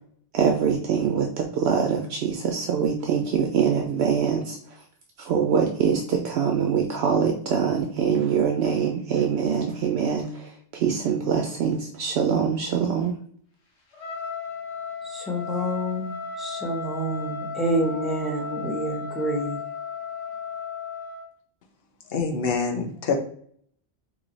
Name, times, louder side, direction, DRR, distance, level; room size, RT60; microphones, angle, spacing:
voice 1, 0.3-4.6 5.2-13.2, right 7 dB, 75° right, 0.8 m, -24 dB
Trumpet, 13.9-21.3, left 6 dB, 85° left, 1.1 m, -35 dB
voice 2, 15.1-19.6, right 1 dB, ahead, 0.8 m, -28 dB
voice 3, 22.1-23.2, left 5 dB, 65° left, 0.9 m, -25 dB
3.1 x 2.8 x 3.9 m
omnidirectional pair, 1.1 m